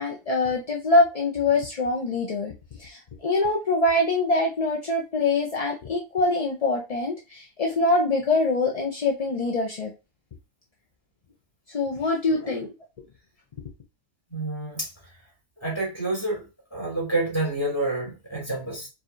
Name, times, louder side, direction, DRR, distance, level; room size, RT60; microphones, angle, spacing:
voice 1, 0.0-2.5 2.8-9.9 11.7-12.7, left 2 dB, 40° left, 0.5 m, -24 dB
voice 2, 14.3-14.9 15.6-16.4 16.7-18.9, right 2 dB, 10° left, 2.3 m, -28 dB
4.9 x 2.8 x 2.5 m
omnidirectional pair, 1.4 m